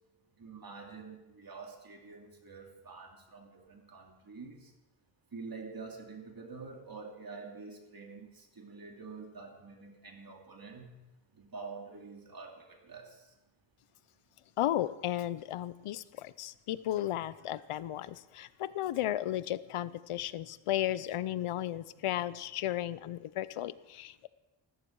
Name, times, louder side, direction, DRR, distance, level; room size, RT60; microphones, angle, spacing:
voice 1, 0.4-4.7 5.3-10.9 11.3-13.2, right 4 dB, 45° right, 2 dB, 2.7 m, -47 dB
voice 2, 14.6-24.3, left 13 dB, 90° left, 17 dB, 0.7 m, -34 dB
14.5 x 14.0 x 4.6 m, 1.0 s
cardioid pair, 75°, 50 cm